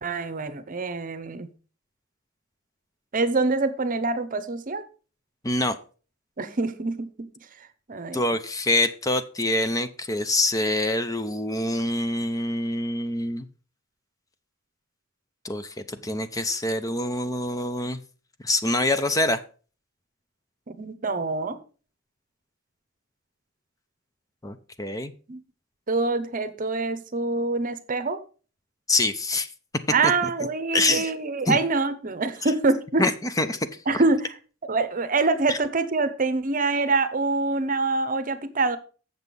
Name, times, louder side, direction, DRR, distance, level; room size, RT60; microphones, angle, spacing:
voice 1, 0.0-1.5 3.1-4.8 6.4-7.3 7.9-8.2 20.7-21.6 25.3-25.4 25.9-28.2 29.9-33.0 33.9-34.3 34.7-38.8, right 3 dB, 45° right, 12 dB, 0.9 m, -25 dB
voice 2, 5.4-5.8 8.1-13.5 15.4-18.0 18.4-19.4 24.4-25.1 28.9-29.5 30.0-30.3 30.7-31.1 31.5-31.6 33.0-33.6 35.5-35.6, left 2 dB, 20° left, 10 dB, 0.6 m, -25 dB
8.0 x 6.8 x 5.3 m, 0.37 s
head